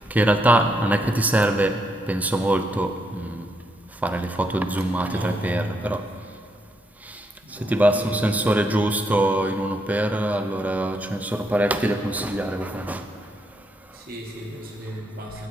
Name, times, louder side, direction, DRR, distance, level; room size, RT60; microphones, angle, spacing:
voice 1, 0.1-1.8 2.1-3.4 4.0-6.0 7.1-7.2 7.7-13.0, right 1 dB, 10° right, 7 dB, 0.3 m, -23 dB
voice 2, 5.1-5.8 7.4-8.6 13.9-15.5, equal, 45° right, -2 dB, 1.1 m, -34 dB
12.5 x 8.8 x 3.1 m, 2.3 s
head